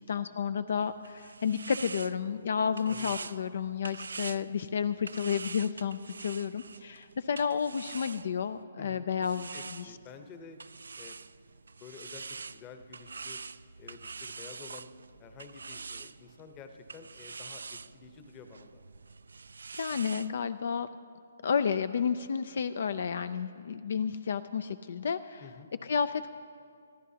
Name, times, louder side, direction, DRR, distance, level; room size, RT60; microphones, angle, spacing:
voice 1, 0.0-10.0 19.8-20.9 21.4-25.4 25.8-26.3, left 6 dB, 65° left, 13 dB, 0.4 m, -31 dB
sound 1, 0.8-8.6 9.2-20.3, right 4 dB, 90° right, 0.3 m, -45 dB
voice 2, 2.8-3.3 8.8-10.6 11.0-11.2 11.8-13.4 13.8-14.9 15.2-18.8 25.4-25.7, left 5 dB, 25° left, 7 dB, 0.9 m, -50 dB
23.5 x 14.0 x 2.8 m, 2.3 s
hypercardioid pair, 155°, 0 cm